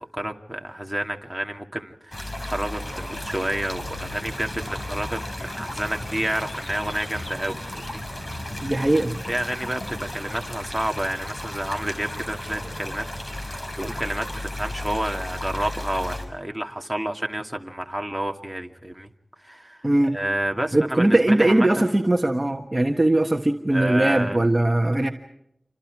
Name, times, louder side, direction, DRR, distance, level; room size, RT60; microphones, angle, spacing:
voice 1, 0.1-8.0 8.4-8.7 9.3-13.0 13.4-19.1 19.4-19.9 20.1-21.7 23.7-24.5, right 1 dB, 5° right, 2 dB, 2.4 m, -30 dB
sound 1, 2.1-16.2, left 1 dB, 40° left, 5.9 m, -34 dB
voice 2, 8.6-9.2 19.8-20.2 20.7-25.1, right 1 dB, 25° right, 3 dB, 1.4 m, -20 dB
29.0 x 26.0 x 4.8 m, 0.79 s
wide cardioid pair, 75°, 0 cm